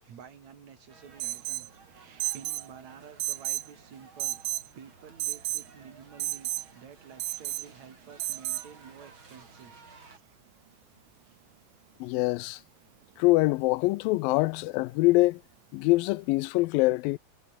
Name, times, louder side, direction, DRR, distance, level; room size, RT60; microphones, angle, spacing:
voice 1, 0.0-4.4 4.7-10.4 10.7-10.8 11.2-11.4, right 7 dB, 55° right, 3.6 m, -51 dB
sound 1, 0.9-10.2, right 4 dB, 35° right, 4.3 m, -55 dB
Alarm, 1.2-1.7 2.2-2.7 3.2-3.7 4.2-4.7 5.2-5.7 6.2-6.7 7.2-7.7 8.2-8.7, right 17 dB, 75° right, 2.2 m, -32 dB
voice 2, 12.0-12.6 13.2-15.4 15.7-17.2, left 21 dB, 90° left, 2.3 m, -24 dB
omnidirectional pair, 4.0 m